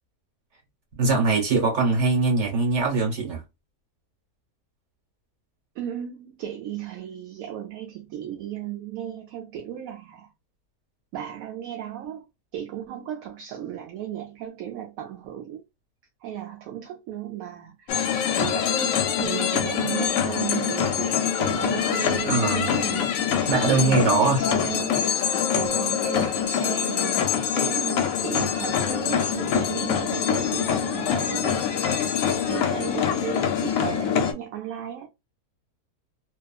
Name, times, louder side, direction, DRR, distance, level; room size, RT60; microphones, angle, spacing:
voice 1, 1.0-3.4 22.2-22.7 23.5-24.4, right 3 dB, 50° right, 1.5 m, -22 dB
voice 2, 5.8-10.3 11.1-12.3 12.5-15.6 16.2-25.0 25.5-31.7 32.5-35.1, right 10 dB, 70° right, 0.9 m, -35 dB
sound 1, 17.9-34.3, left 8 dB, 70° left, 0.9 m, -25 dB
2.8 x 2.4 x 2.2 m
omnidirectional pair, 1.7 m